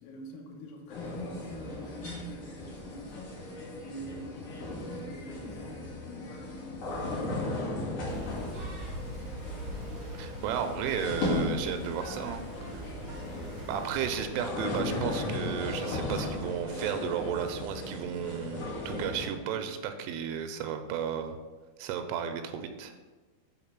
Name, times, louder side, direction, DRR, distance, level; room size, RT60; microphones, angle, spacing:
voice 1, 0.0-3.6 3.8-8.6, equal, 85° left, 0 dB, 1.9 m, -45 dB
sound 1, 0.9-19.2, left 2 dB, 55° left, 1.7 m, -36 dB
sound 2, 8.1-14.2, right 1 dB, 70° right, 1.2 m, -43 dB
voice 2, 10.2-12.9 13.7-21.4 21.8-23.0, right 8 dB, 85° right, 7 dB, 3.1 m, -34 dB
7.2 x 4.3 x 5.9 m, 1.3 s
omnidirectional pair, 5.6 m